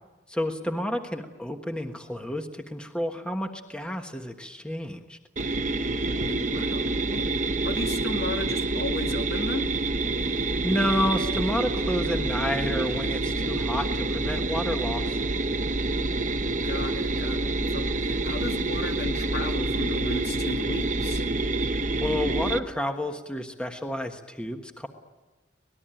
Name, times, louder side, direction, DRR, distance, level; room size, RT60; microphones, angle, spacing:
voice 1, 0.3-5.2 10.2-15.2 22.0-24.9, left 1 dB, 5° left, 4 dB, 1.4 m, -30 dB
sound 1, 5.4-22.6, right 2 dB, 40° right, 1.1 m, -27 dB
voice 2, 6.3-9.7 16.5-21.2, left 2 dB, 55° left, 4 dB, 2.1 m, -35 dB
25.5 x 19.5 x 9.1 m, 1.2 s
head